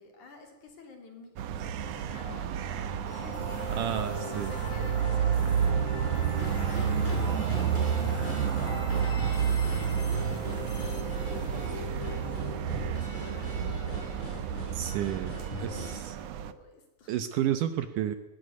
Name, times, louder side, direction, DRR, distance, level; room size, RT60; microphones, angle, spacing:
voice 1, 0.0-5.9 6.5-17.1, left 2 dB, 55° left, 4 dB, 4.9 m, -51 dB
sound 1, 1.4-16.5, right 8 dB, 90° right, 1.4 m, -30 dB
sound 2, 2.1-16.0, equal, 10° left, 6.8 m, -41 dB
sound 3, 3.1-14.9, left 2 dB, 70° left, 5.7 m, -42 dB
voice 2, 3.7-4.5 14.7-15.9 17.1-18.2, right 11 dB, 70° right, 11 dB, 2.3 m, -31 dB
20.0 x 18.0 x 9.5 m, 1.0 s
omnidirectional pair, 4.3 m